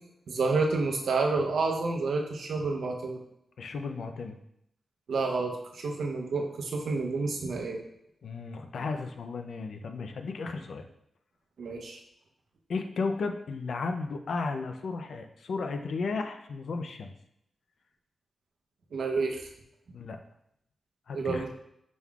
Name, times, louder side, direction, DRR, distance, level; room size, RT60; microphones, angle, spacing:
voice 1, 0.3-3.2 5.1-7.8 11.6-12.0 18.9-19.4 21.1-21.5, right 3 dB, 80° right, 1 dB, 0.7 m, -29 dB
voice 2, 3.6-4.4 8.2-10.8 12.7-17.1 19.9-20.2 21.1-21.5, left 4 dB, 75° left, 6 dB, 0.4 m, -34 dB
6.0 x 3.6 x 2.3 m, 0.76 s
wide cardioid pair, 95°, 0 cm